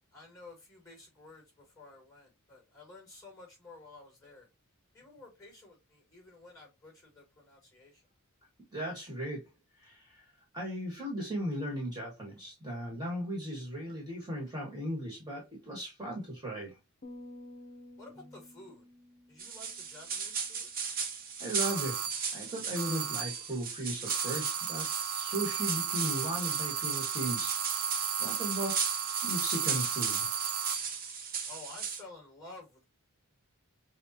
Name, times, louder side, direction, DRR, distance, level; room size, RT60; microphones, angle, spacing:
voice 1, 0.1-4.5 4.9-8.0 18.0-18.8 19.3-20.7 31.4-32.8, left 2 dB, 15° left, 2.8 m, -52 dB
voice 2, 8.7-9.4 9.8-10.3 10.5-16.8 21.4-22.0 22.3-27.5 28.2-28.8 29.2-30.3, right 1 dB, 20° right, 1.6 m, -37 dB
sound 1, 17.0-20.4, left 1 dB, 40° left, 0.8 m, -51 dB
sound 2, 19.4-32.0, right 6 dB, 40° right, 0.8 m, -37 dB
sound 3, 21.6-22.3 22.8-23.5 24.1-30.9, right 8 dB, 85° right, 0.6 m, -34 dB
6.2 x 2.4 x 2.8 m
head